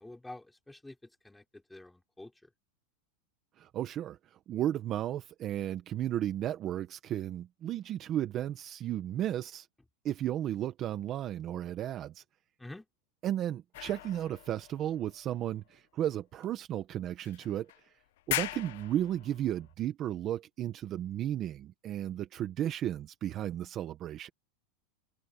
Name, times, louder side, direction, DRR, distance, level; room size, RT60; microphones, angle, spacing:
voice 1, 0.0-2.3 12.6-12.9, left 2 dB, 5° left, 4.4 m, -48 dB
voice 2, 3.6-9.7 10.0-12.2 13.2-17.7 18.3-24.3, right 11 dB, 30° right, 1.0 m, -34 dB
sound 1, 13.7-15.7 16.4-16.5 17.2-17.8 18.2-19.7, left 16 dB, 65° left, 1.0 m, -40 dB
open air
supercardioid pair, 160°, 0 cm